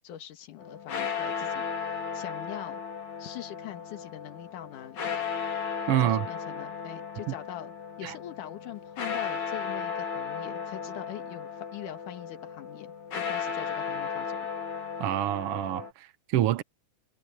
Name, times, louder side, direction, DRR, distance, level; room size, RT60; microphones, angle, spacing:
voice 1, 0.0-2.8 3.2-5.1 6.0-7.7 8.0-14.5, left 11 dB, 85° left, 3.1 m, -43 dB
sound 1, 0.6-15.9, left 6 dB, 70° left, 4.2 m, -35 dB
voice 2, 5.9-6.3 7.3-7.4 8.0-8.1 15.0-16.6, right 14 dB, 70° right, 1.4 m, -27 dB
omnidirectional pair, 3.5 m